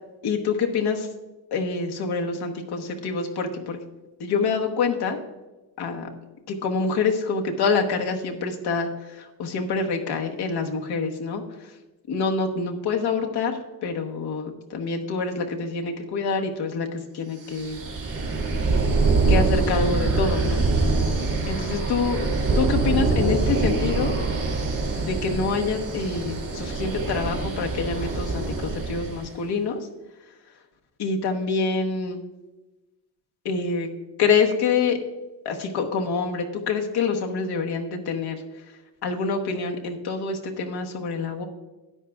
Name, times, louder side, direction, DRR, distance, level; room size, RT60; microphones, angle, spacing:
voice 1, 0.2-1.1 1.5-3.8 4.2-5.2 5.8-6.1 6.5-11.4 12.1-17.8 19.3-20.6 21.5-22.3 22.6-24.1 25.0-29.8 31.0-32.2 33.4-33.9 34.2-35.0 35.4-38.4 39.0-41.4, left 4 dB, 85° left, 2 dB, 1.2 m, -26 dB
sound 1, 17.5-29.3, right 3 dB, 55° right, 2.2 m, -24 dB
13.0 x 9.4 x 2.4 m, 1.1 s
cardioid pair, 95°, 38 cm